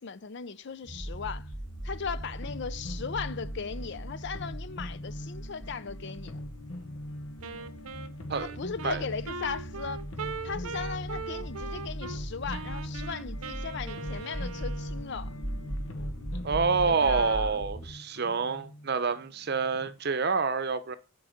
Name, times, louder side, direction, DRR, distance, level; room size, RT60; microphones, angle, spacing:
voice 1, 0.0-1.5 1.8-6.4 8.6-10.0 10.4-15.3 16.9-17.5, left 5 dB, 55° left, 0.5 m, -37 dB
sound 1, 0.8-19.9, left 1 dB, 80° left, 1.1 m, -42 dB
sound 2, 0.9-17.9, right 1 dB, 15° left, 2.2 m, -40 dB
Wind instrument woodwind instrument, 7.4-12.2 12.5-15.1, right 4 dB, 90° right, 0.7 m, -40 dB
voice 2, 16.4-21.0, right 5 dB, 50° right, 0.7 m, -27 dB
6.5 x 4.7 x 6.5 m
head